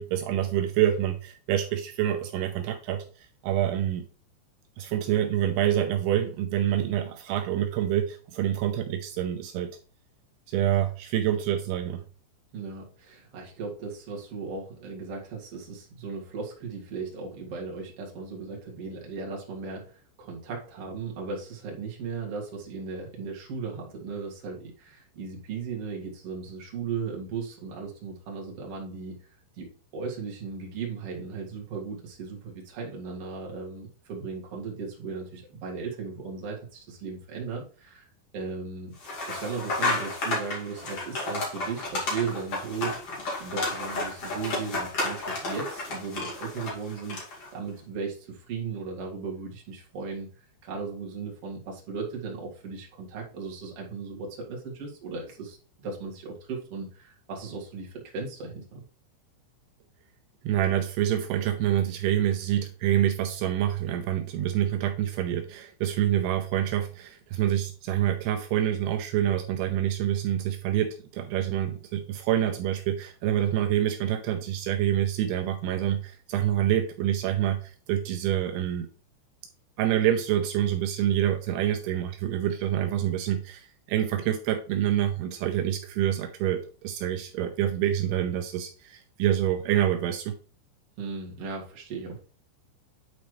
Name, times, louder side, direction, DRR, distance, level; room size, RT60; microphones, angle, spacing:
voice 1, 0.0-4.1 4.8-9.7 10.5-12.0 60.4-78.9 79.8-90.4, right 11 dB, 90° right, 4 dB, 2.4 m, -27 dB
voice 2, 12.5-29.3 29.5-38.1 38.3-38.9 39.3-43.0 43.4-47.2 47.5-50.3 50.6-58.8 91.0-92.2, right 5 dB, 45° right, -2 dB, 2.0 m, -36 dB
sound 1, 39.0-47.5, left 2 dB, 40° left, 2.6 m, -32 dB
9.4 x 4.2 x 3.1 m, 0.39 s
omnidirectional pair, 5.4 m